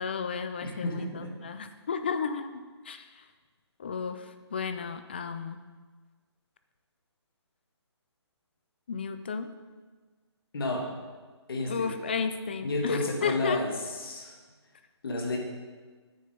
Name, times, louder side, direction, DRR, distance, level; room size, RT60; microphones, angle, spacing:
voice 1, 0.0-3.2 3.8-5.6 8.9-9.5 11.6-13.6, left 5 dB, 20° left, 9 dB, 0.3 m, -33 dB
voice 2, 0.6-1.3 10.5-10.9 11.5-11.9 12.6-13.7 14.0-14.4 15.0-15.4, left 2 dB, 55° left, 2 dB, 1.9 m, -31 dB
9.1 x 6.7 x 5.2 m, 1.4 s
hypercardioid pair, 165°, 15 cm